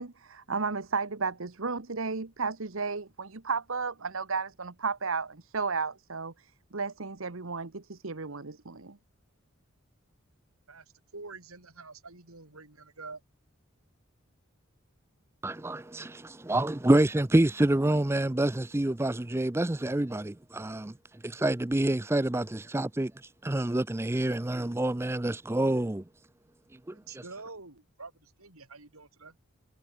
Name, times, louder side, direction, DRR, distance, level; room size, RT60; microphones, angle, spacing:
voice 1, 0.0-6.3 6.7-9.0, right 4 dB, 70° right, 1.2 m, -33 dB
voice 2, 10.7-13.2 27.0-29.4, right 3 dB, 85° right, 4.4 m, -47 dB
voice 3, 15.4-20.9 21.2-23.1 23.4-26.0 26.9-27.0, right 1 dB, 10° right, 0.4 m, -27 dB
head